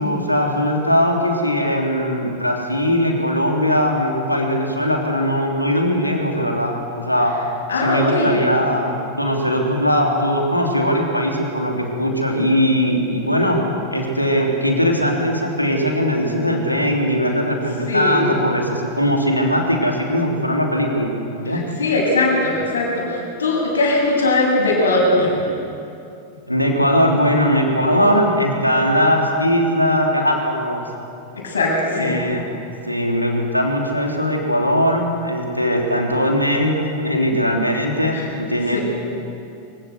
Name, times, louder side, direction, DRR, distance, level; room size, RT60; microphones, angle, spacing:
voice 1, 0.0-7.3 7.7-13.6 13.9-21.6 26.5-30.8 31.9-32.6 32.9-38.8, equal, 90° left, 0 dB, 3.2 m, -20 dB
voice 2, 7.7-8.3 17.9-18.3 21.5-25.4 31.3-32.2 38.1-38.3 38.7-38.8, left 2 dB, 70° left, -2 dB, 7.3 m, -20 dB
24.5 x 16.0 x 8.1 m, 2.6 s
figure-of-eight pair, 90°, 0 cm